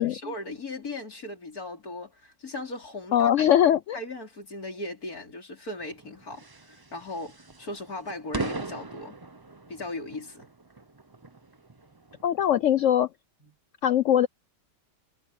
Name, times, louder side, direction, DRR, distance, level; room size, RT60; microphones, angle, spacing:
voice 1, 0.0-9.2 9.7-10.5 13.4-13.6, left 2 dB, 60° left, 4.7 m, -38 dB
voice 2, 3.1-4.0 12.2-13.1 13.8-14.3, left 10 dB, 75° left, 0.7 m, -21 dB
sound 1, 5.8-12.9, right 3 dB, 25° right, 0.5 m, -40 dB
omnidirectional pair, 1.8 m